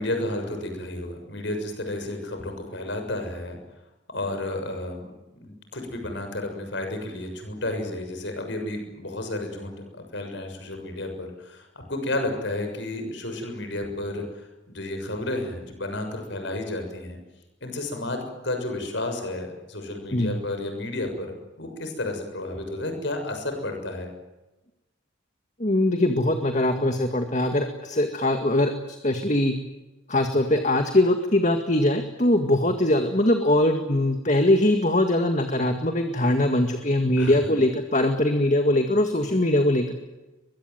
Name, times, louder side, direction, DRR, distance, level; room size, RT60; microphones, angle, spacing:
voice 1, 0.0-3.6 4.1-5.1 5.4-9.7 10.1-14.2 14.7-17.2 17.6-24.1 37.2-37.6, left 1 dB, 60° left, 5 dB, 6.9 m, -32 dB
voice 2, 25.6-28.7 29.0-29.5 30.1-39.9, left 1 dB, 35° left, 6 dB, 1.9 m, -22 dB
23.0 x 22.5 x 9.4 m, 1.1 s
head